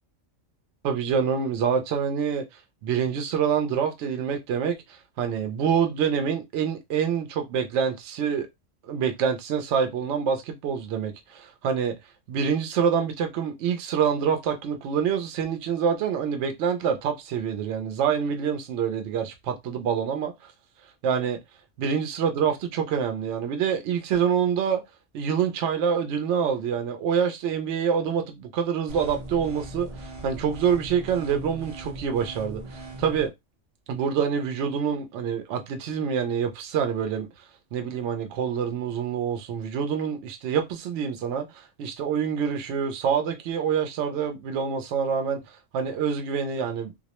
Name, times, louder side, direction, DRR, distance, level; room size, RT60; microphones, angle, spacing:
voice 1, 0.8-2.4 2.8-8.5 8.8-11.9 12.3-20.5 21.0-21.4 21.8-24.8 25.1-33.3 33.9-37.3 37.7-47.0, right 7 dB, 70° right, 0.9 m, -26 dB
sound 1, 28.9-33.3, right 1 dB, 30° right, 0.6 m, -39 dB
2.4 x 2.0 x 2.9 m
omnidirectional pair, 1.3 m